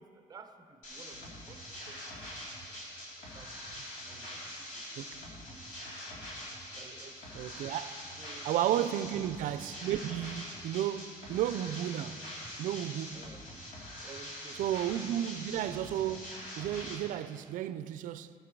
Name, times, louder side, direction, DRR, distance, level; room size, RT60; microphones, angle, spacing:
voice 1, 0.0-2.4 3.3-3.5 4.0-5.1 5.5-5.9 6.7-7.5 8.2-8.5 8.8-9.2 12.6-12.8 13.1-13.5 14.0-14.7, right 5 dB, 30° right, 0.7 m, -54 dB
sound 1, 0.8-16.9, equal, 65° left, 2.8 m, -44 dB
voice 2, 7.3-7.9 8.4-12.3 12.6-13.3 14.6-18.3, right 11 dB, 70° right, 0.4 m, -33 dB
15.0 x 6.8 x 4.6 m
cardioid pair, 140°, 14 cm